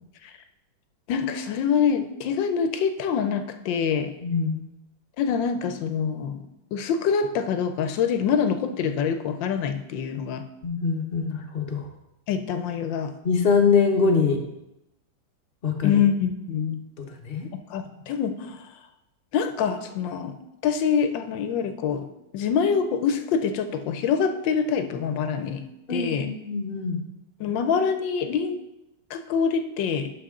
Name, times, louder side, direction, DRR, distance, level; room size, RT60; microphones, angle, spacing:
voice 1, 1.1-4.1 5.2-10.4 12.3-13.1 15.8-16.8 17.5-18.6 19.3-20.4 20.6-22.1 22.3-25.6 25.9-26.3 27.4-28.6 29.1-30.1, left 7 dB, 75° left, 8 dB, 1.4 m, -25 dB
voice 2, 4.2-4.6 10.6-11.8 13.2-14.4 15.6-16.0 17.2-17.5 25.9-27.0, left 5 dB, 40° left, 3 dB, 0.9 m, -23 dB
12.0 x 5.3 x 3.7 m, 0.91 s
omnidirectional pair, 2.1 m